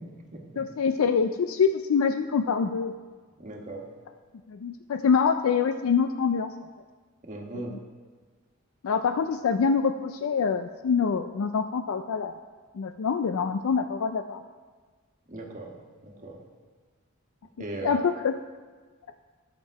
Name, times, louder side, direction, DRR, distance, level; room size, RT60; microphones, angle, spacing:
voice 1, 0.6-2.9 4.5-6.5 7.5-7.8 8.8-12.4 12.7-14.4 17.8-18.3, left 6 dB, 80° left, 8 dB, 0.4 m, -25 dB
voice 2, 3.4-3.9 7.3-7.7 15.3-15.7 16.0-16.4 17.6-18.0, right 2 dB, 40° right, 1 dB, 1.5 m, -37 dB
11.0 x 7.4 x 4.7 m, 1.4 s
head